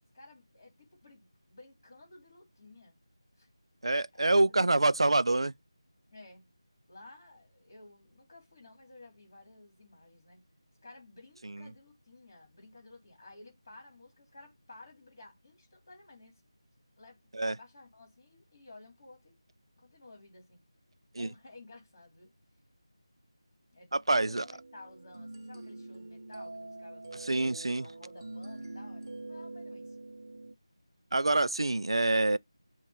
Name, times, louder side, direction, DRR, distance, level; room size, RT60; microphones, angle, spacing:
voice 1, 0.1-3.0 3.3-3.5 4.1-5.2 6.1-6.4 6.9-10.4 10.8-16.4 17.0-19.4 19.8-20.6 21.2-22.3 23.7-27.3 27.8-30.0, left 2 dB, 35° left, 2.5 m, -54 dB
voice 2, 3.8-5.5 17.3-17.5 21.1-21.3 23.9-24.4 27.2-27.9 31.1-32.4, right 2 dB, 60° right, 0.3 m, -26 dB
sound 1, 24.1-30.5, right 2 dB, 40° right, 0.8 m, -45 dB
5.7 x 2.4 x 3.6 m
figure-of-eight pair, 165°, 3 cm